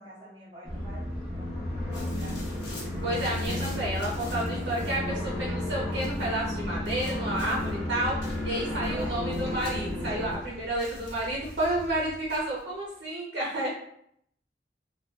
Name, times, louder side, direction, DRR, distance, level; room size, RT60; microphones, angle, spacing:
voice 1, 0.0-2.6 8.8-9.2, right 1 dB, 30° right, -13 dB, 0.8 m, -47 dB
sound 1, 0.6-10.3, left 1 dB, ahead, 0.9 m, -32 dB
sound 2, 1.0-13.0, equal, 35° left, 0.6 m, -45 dB
sound 3, 1.9-5.1 5.9-6.3 6.8-7.8 8.2-10.5 10.8-11.9 12.3-12.6, left 2 dB, 85° left, 0.8 m, -48 dB
voice 2, 3.0-8.2 8.4-13.7, right 1 dB, 75° right, -5 dB, 0.6 m, -31 dB
2.6 x 2.2 x 2.3 m, 0.70 s
head